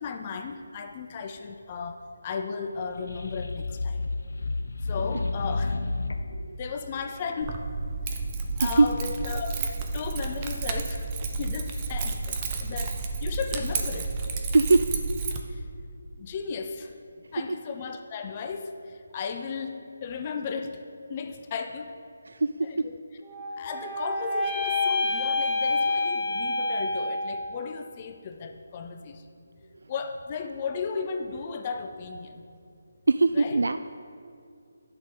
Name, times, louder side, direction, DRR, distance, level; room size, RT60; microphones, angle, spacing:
voice 1, 0.0-4.0 4.8-5.8 6.6-7.6 8.1-8.2 8.6-11.1 11.4-14.1 15.5-15.6 16.2-16.9 17.3-20.8 21.1-21.9 22.6-22.8 23.6-29.2 29.9-32.5 33.3-33.6, left 5 dB, 25° left, 6 dB, 0.5 m, -35 dB
sound 1, 2.8-6.5, left 3 dB, 80° left, 0.7 m, -31 dB
voice 2, 6.2-6.6 8.6-8.9 12.7-12.8 14.5-15.0 22.3-22.9 33.1-33.8, right 3 dB, 75° right, 11 dB, 0.3 m, -22 dB
Keys jangling, 7.4-15.4, right 3 dB, 20° right, 0.6 m, -31 dB
sound 2, 23.2-27.6, left 2 dB, ahead, 1.0 m, -28 dB
11.0 x 6.5 x 5.3 m, 2.3 s
figure-of-eight pair, 170°, 0 cm